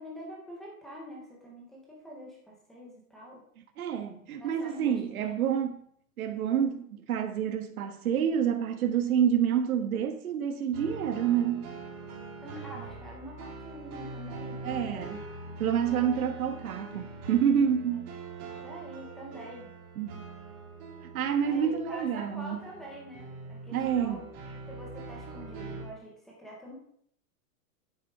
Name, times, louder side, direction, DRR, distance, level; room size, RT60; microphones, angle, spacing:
voice 1, 0.0-3.4 4.3-5.6 12.4-15.1 15.4-15.5 18.6-19.7 21.4-26.7, equal, ahead, 0.5 m, -45 dB
voice 2, 3.8-5.8 6.2-11.7 14.6-15.2 15.6-18.1 20.0-20.2 21.1-22.7 23.7-24.3, right 8 dB, 80° right, 1.3 m, -28 dB
sound 1, 10.7-25.8, right 3 dB, 30° right, 3.0 m, -43 dB
9.2 x 7.9 x 5.4 m
supercardioid pair, 180°, 42 cm